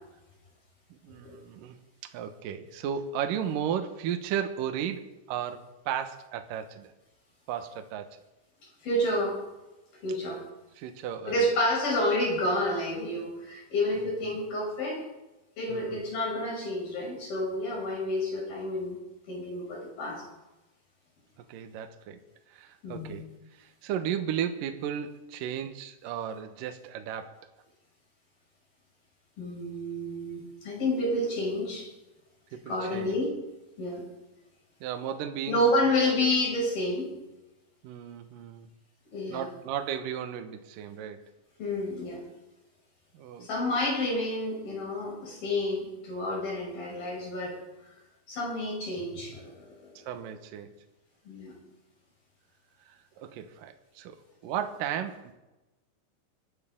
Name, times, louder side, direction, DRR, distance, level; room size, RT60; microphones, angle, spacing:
voice 1, 1.0-1.8 2.0-6.9 7.5-8.2 10.8-11.5 13.9-14.1 15.7-16.0 21.5-22.2 22.5-23.3 23.5-27.4 32.5-33.2 34.8-35.6 36.1-36.2 37.8-38.7 39.3-41.2 43.1-43.5 50.1-50.7 52.9-55.3, right 9 dB, 70° right, 6 dB, 2.2 m, -35 dB
voice 2, 8.8-9.4 10.0-10.4 11.3-15.1 15.6-19.0 19.3-20.2 22.8-23.2 29.4-31.9 32.7-33.3 33.8-34.0 35.5-37.1 39.1-39.5 41.6-42.2 43.4-47.6 48.3-49.7 51.3-51.6, left 1 dB, 50° left, -3 dB, 7.9 m, -29 dB
25.5 x 12.0 x 3.8 m, 1.0 s
omnidirectional pair, 5.3 m